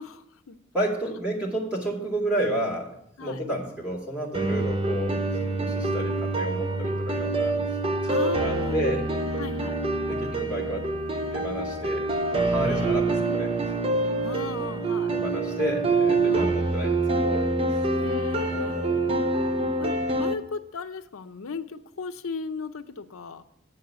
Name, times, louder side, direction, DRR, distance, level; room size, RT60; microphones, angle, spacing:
voice 1, 0.0-0.6 3.2-3.4 4.5-4.8 8.0-8.9 9.4-9.8 12.6-13.5 14.2-15.1 16.2-16.5 17.9-19.2 19.8-23.4, left 4 dB, 85° left, 9 dB, 0.6 m, -37 dB
voice 2, 0.7-7.6 8.0-9.1 10.0-10.9 11.3-13.5 15.1-17.4 17.7-17.8 18.5-19.1, right 1 dB, 5° right, -5 dB, 2.3 m, -31 dB
sound 1, 4.3-20.3, right 2 dB, 25° right, 0.5 m, -26 dB
9.9 x 4.8 x 7.9 m, 0.75 s
head